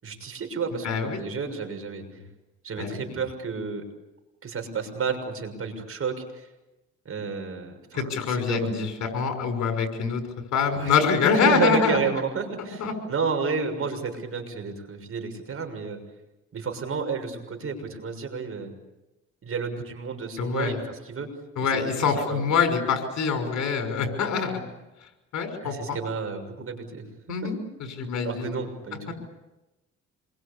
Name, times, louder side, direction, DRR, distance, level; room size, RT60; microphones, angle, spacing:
voice 1, 0.0-2.0 2.6-3.8 4.4-6.5 7.0-8.7 10.7-11.0 11.3-16.0 16.5-18.7 19.4-21.3 21.6-21.7 22.2-22.5 24.4-24.6 25.6-27.5 28.2-29.1, right 5 dB, 45° right, 5 dB, 6.5 m, -31 dB
voice 2, 0.8-1.2 2.8-3.1 7.9-10.2 10.5-12.1 12.8-12.9 20.4-20.8 21.6-24.5 25.3-26.0 27.3-27.6 28.0-28.5 29.1-29.2, left 5 dB, 65° left, 6 dB, 6.0 m, -25 dB
27.5 x 23.0 x 8.5 m, 1.0 s
cardioid pair, 80°, 30 cm